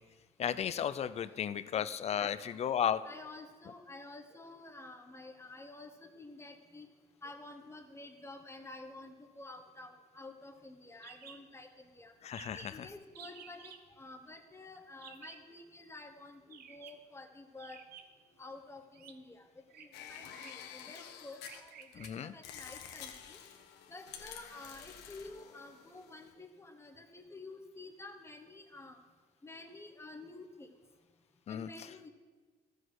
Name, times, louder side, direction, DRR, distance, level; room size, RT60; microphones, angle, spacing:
voice 1, 0.4-3.0 12.2-12.9 21.9-22.3 31.5-31.7, left 9 dB, 40° left, 13 dB, 0.4 m, -34 dB
voice 2, 3.0-6.9 7.2-12.1 12.5-17.8 18.4-19.4 19.8-23.4 23.9-29.0 29.4-30.7 31.5-32.1, left 2 dB, 15° left, 4 dB, 1.0 m, -50 dB
sound 1, 11.0-11.4 11.7-11.8 12.0-12.1 12.3-12.8 13.1-13.8 15.0-15.5 16.5-17.0 17.6-18.3 18.9-19.1 19.7-19.9 20.3-20.7 21.4-22.1, right 8 dB, 65° right, 0.8 m, -53 dB
sound 2, 19.9-22.1 22.4-26.3, left 8 dB, 85° left, 1.1 m, -49 dB
13.0 x 6.4 x 4.7 m, 1.4 s
cardioid pair, 110°, 17 cm